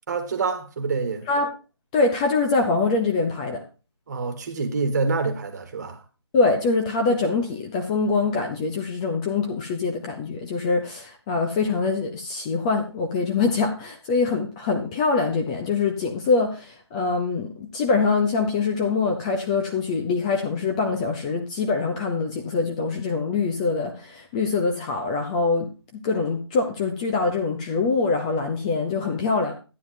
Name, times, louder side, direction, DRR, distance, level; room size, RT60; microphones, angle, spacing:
voice 1, 0.1-1.2 4.1-6.0, right 4 dB, 40° right, 1.5 m, -26 dB
voice 2, 1.9-3.6 6.3-29.6, left 4 dB, 15° left, 0.6 m, -24 dB
12.5 x 9.5 x 2.6 m
figure-of-eight pair, 160°, 15 cm